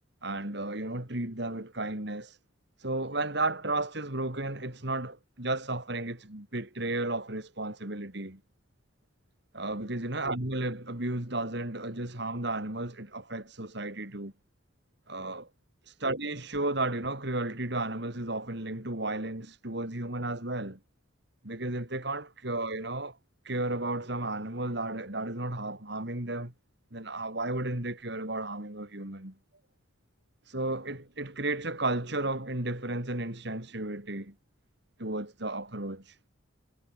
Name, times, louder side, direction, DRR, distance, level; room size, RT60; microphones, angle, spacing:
voice 1, 0.2-2.4 2.8-8.4 9.5-14.3 15.1-15.5 16.0-20.8 21.4-23.2 23.4-26.5 26.9-29.3 30.5-34.3 35.0-36.0, right 2 dB, 55° right, 3.1 m, -33 dB
head